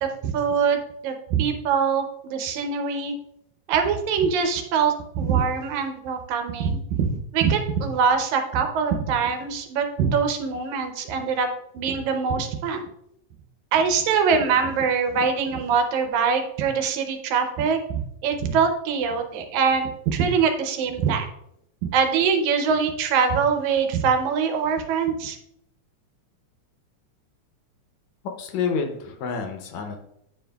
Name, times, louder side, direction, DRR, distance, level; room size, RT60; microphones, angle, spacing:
voice 1, 0.3-0.8 1.0-3.1 3.7-11.5 11.7-12.8 13.7-21.3 21.8-25.4, right 6 dB, 80° right, 6 dB, 2.1 m, -23 dB
voice 2, 28.2-30.0, left 5 dB, 75° left, 4 dB, 2.0 m, -28 dB
9.2 x 4.7 x 2.2 m, 0.77 s
omnidirectional pair, 3.4 m